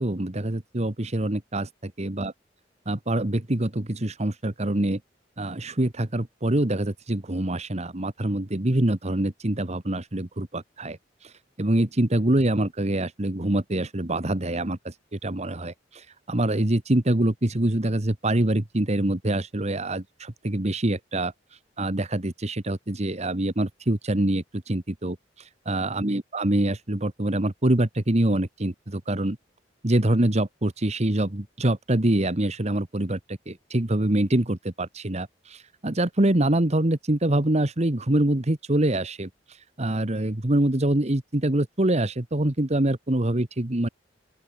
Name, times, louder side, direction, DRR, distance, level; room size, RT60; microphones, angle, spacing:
voice 1, 0.0-2.3 2.8-5.0 5.4-11.0 11.2-11.3 11.6-21.3 21.8-25.2 25.6-29.4 29.8-39.3 39.8-43.9, right 1 dB, 35° right, 1.5 m, -25 dB
open air
head